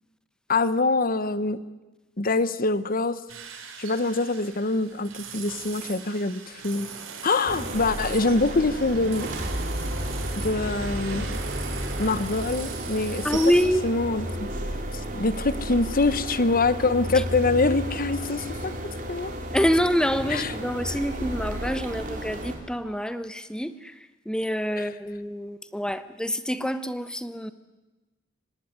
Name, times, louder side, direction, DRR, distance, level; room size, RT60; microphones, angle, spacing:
voice 1, 0.5-1.6 2.2-3.2 3.8-6.9 7.2-9.3 10.3-11.4 12.0-13.3 13.8-14.5 15.1-18.7 19.1-19.3 20.3-20.5, left 3 dB, 45° left, 14 dB, 1.1 m, -24 dB
sound 1, 3.3-13.6, right 7 dB, 80° right, 3.6 m, -41 dB
sound 2, 7.5-22.6, right 1 dB, 45° right, 4.1 m, -33 dB
sound 3, 8.7-14.0, right 1 dB, 60° right, 2.7 m, -34 dB
voice 2, 13.2-13.8 17.1-17.2 19.5-27.5, equal, 5° left, 11 dB, 1.0 m, -26 dB
24.5 x 19.0 x 9.8 m, 1.1 s
head